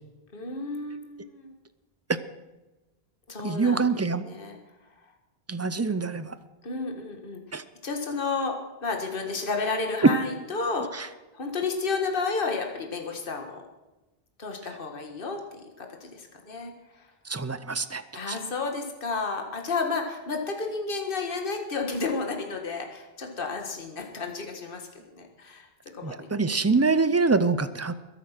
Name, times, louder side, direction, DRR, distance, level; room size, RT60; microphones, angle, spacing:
voice 1, 0.3-1.5 3.3-3.9 4.2-4.6 6.6-7.4 7.8-13.6 14.4-17.1 18.1-24.9 25.1-26.3, left 4 dB, 60° left, 3 dB, 1.8 m, -32 dB
voice 2, 3.4-4.3 5.5-6.3 7.5-7.6 11.0-11.1 17.3-18.0 18.3-18.4 26.0-27.9, right 4 dB, 20° right, 13 dB, 0.5 m, -25 dB
22.0 x 8.2 x 5.9 m, 1.1 s
omnidirectional pair, 1.0 m